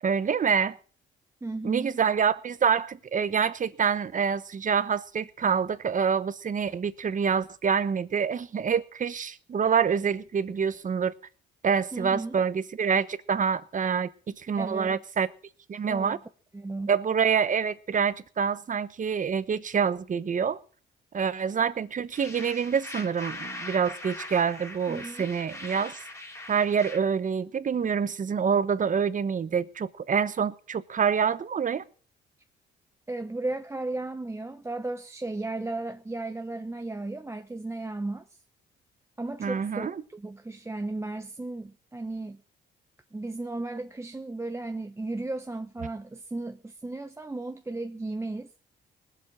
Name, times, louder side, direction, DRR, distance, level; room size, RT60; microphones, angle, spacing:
voice 1, 0.0-0.8 1.6-11.1 11.6-14.1 14.4-15.3 15.7-16.2 16.9-20.6 21.1-26.0 26.5-31.8 39.4-40.0, right 6 dB, 40° right, 1.1 m, -26 dB
voice 2, 1.4-2.0 11.9-12.4 14.6-15.0 15.9-16.2 16.5-16.9 24.9-25.3 33.1-38.3 39.2-42.4 43.1-48.5, right 2 dB, 15° right, 0.9 m, -35 dB
sound 1, 22.1-27.0, left 2 dB, 15° left, 3.0 m, -41 dB
20.0 x 7.7 x 6.3 m
cardioid pair, 90°, 20 cm